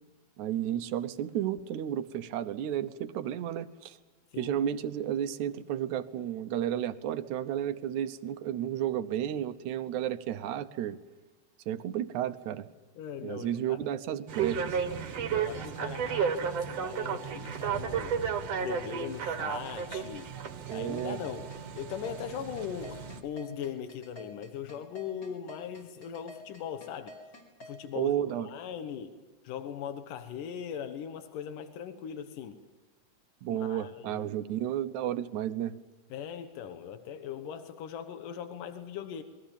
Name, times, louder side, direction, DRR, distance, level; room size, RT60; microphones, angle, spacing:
voice 1, 0.4-4.0 4.4-11.0 11.7-12.7 13.2-14.8 20.7-21.2 28.0-28.5 33.4-35.8, right 10 dB, 70° right, 11 dB, 2.3 m, -32 dB
voice 2, 13.0-13.8 15.2-18.2 18.6-20.3 20.7-27.2 27.6-28.1 28.4-29.2 29.4-32.6 33.5-34.4 36.1-39.2, left 8 dB, 85° left, 8 dB, 2.9 m, -40 dB
sound 1, 14.3-23.2, right 7 dB, 55° right, 2.4 m, -33 dB
sound 2, 19.4-27.7, left 1 dB, 30° left, 5.4 m, -49 dB
28.0 x 22.5 x 7.2 m, 1.2 s
omnidirectional pair, 3.7 m